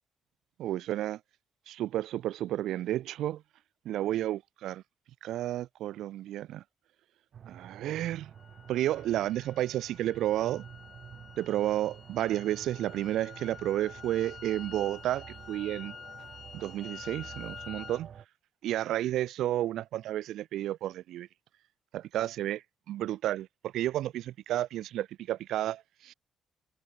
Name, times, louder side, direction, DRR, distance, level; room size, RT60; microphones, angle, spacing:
voice 1, 0.6-1.2 1.7-3.4 3.8-4.8 5.2-6.6 7.5-8.3 8.7-10.6 11.4-15.9 16.5-18.1 18.6-21.3 21.9-26.1, right 13 dB, 90° right, 0.5 m, -31 dB
sound 1, 7.3-18.3, right 8 dB, 45° right, 2.0 m, -49 dB
sound 2, 8.4-18.0, left 6 dB, 35° left, 4.5 m, -48 dB
cardioid pair, 170°, 0 cm